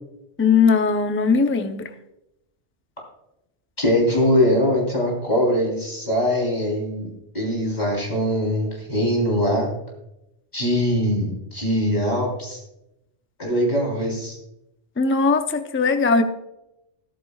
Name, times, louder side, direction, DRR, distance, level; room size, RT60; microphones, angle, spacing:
voice 1, 0.4-1.9 15.0-16.2, left 5 dB, 15° left, 7 dB, 0.5 m, -19 dB
voice 2, 3.8-7.1 7.3-9.7 10.5-12.6 13.4-14.4, equal, 40° left, -2 dB, 4.0 m, -22 dB
14.0 x 13.5 x 2.4 m, 0.87 s
omnidirectional pair, 1.1 m